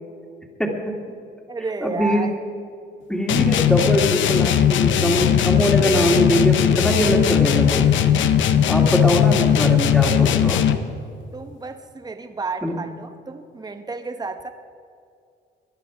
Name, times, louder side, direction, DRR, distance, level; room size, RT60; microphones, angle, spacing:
voice 1, 0.6-1.0 1.8-2.3 3.1-7.9 8.7-10.6 12.6-12.8, equal, 5° left, 1 dB, 2.3 m, -22 dB
voice 2, 1.5-2.3 11.3-14.5, right 4 dB, 20° right, 7 dB, 0.9 m, -31 dB
sound 1, 3.3-10.9, left 9 dB, 75° left, 0.8 m, -18 dB
19.5 x 10.5 x 5.0 m, 2.4 s
cardioid pair, 90°, 20 cm